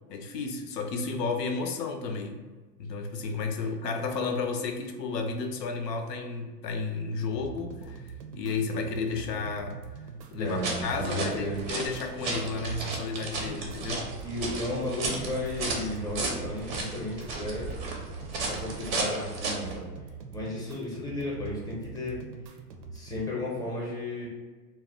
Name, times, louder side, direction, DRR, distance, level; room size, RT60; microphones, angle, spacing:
voice 1, 0.1-2.4 2.8-9.8 10.3-14.1, left 4 dB, 80° left, 5 dB, 0.6 m, -32 dB
sound 1, 7.2-23.2, right 5 dB, 85° right, 0.6 m, -43 dB
voice 2, 10.4-11.6 14.2-17.7 18.5-19.9 20.3-22.2 22.9-24.3, left 1 dB, 10° left, -5 dB, 0.6 m, -33 dB
sound 2, 10.5-19.8, right 3 dB, 35° right, 0.5 m, -34 dB
2.2 x 2.0 x 3.6 m, 1.4 s
hypercardioid pair, 115°, 48 cm